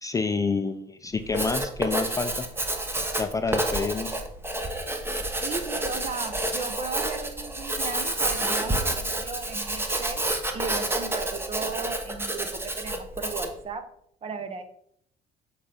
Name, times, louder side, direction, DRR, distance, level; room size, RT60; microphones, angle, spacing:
voice 1, 0.0-2.5 3.2-4.2, left 4 dB, 20° left, 9 dB, 0.5 m, -28 dB
Writing, 1.2-13.6, right 1 dB, 15° right, 1.0 m, -29 dB
voice 2, 5.4-10.2 10.5-13.8 14.2-14.6, right 4 dB, 35° right, 8 dB, 1.1 m, -36 dB
7.3 x 4.5 x 5.1 m, 0.70 s
cardioid pair, 110°, 17 cm